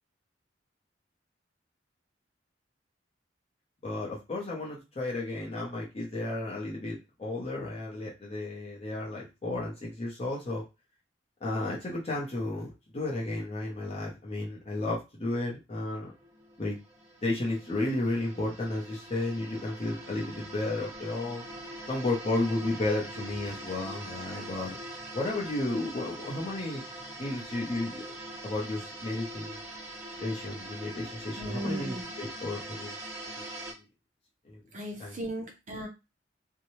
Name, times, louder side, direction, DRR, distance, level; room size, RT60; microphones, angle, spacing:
voice 1, 3.8-10.6 11.4-16.1 16.6-16.8 17.2-21.5 21.9-24.8 25.1-26.8 27.2-28.0 28.4-29.6 30.2-32.9 33.3-33.4 34.5-34.6 35.0-35.1, left 2 dB, 35° left, -4 dB, 0.7 m, -33 dB
sound 1, 16.0-33.7, right 1 dB, 15° right, 1.3 m, -43 dB
voice 2, 31.4-32.1 34.7-35.9, right 1 dB, 40° right, 2 dB, 0.6 m, -36 dB
2.7 x 2.2 x 3.0 m, 0.25 s
head